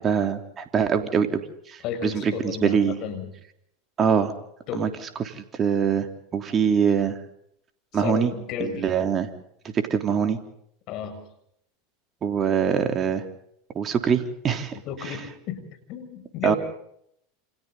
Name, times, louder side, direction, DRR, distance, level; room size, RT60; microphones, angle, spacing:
voice 1, 0.0-3.0 4.0-4.3 4.7-4.9 5.2-6.1 6.3-7.2 7.9-8.3 8.6-9.3 9.7-10.4 12.2-13.2 13.7-14.8 15.0-15.2 16.4-16.5, right 7 dB, 35° right, 6 dB, 3.4 m, -23 dB
voice 2, 1.8-3.3 4.7-4.9 7.9-8.9 10.9-11.2 14.7-15.6 15.9-16.6, left 7 dB, 50° left, 7 dB, 6.8 m, -33 dB
29.0 x 27.5 x 4.0 m, 0.72 s
hypercardioid pair, 85°, 0 cm